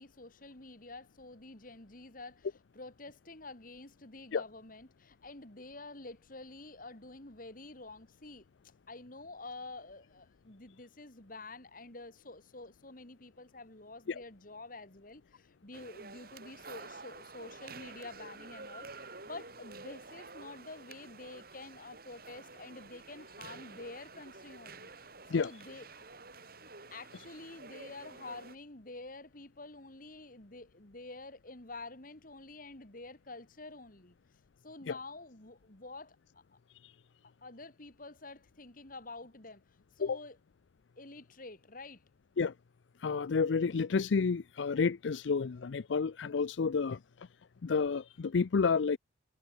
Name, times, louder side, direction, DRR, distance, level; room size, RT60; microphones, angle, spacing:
voice 1, 0.0-2.5 2.7-8.4 8.9-24.9 25.3-25.9 26.9-34.2 34.6-36.6 37.4-39.6 40.0-40.4 41.0-42.0, left 2 dB, 50° left, 2.8 m, -48 dB
sound 1, 15.7-28.6, right 3 dB, 55° right, 6.9 m, -50 dB
voice 2, 43.0-47.3 47.6-49.0, left 5 dB, 90° left, 0.5 m, -30 dB
head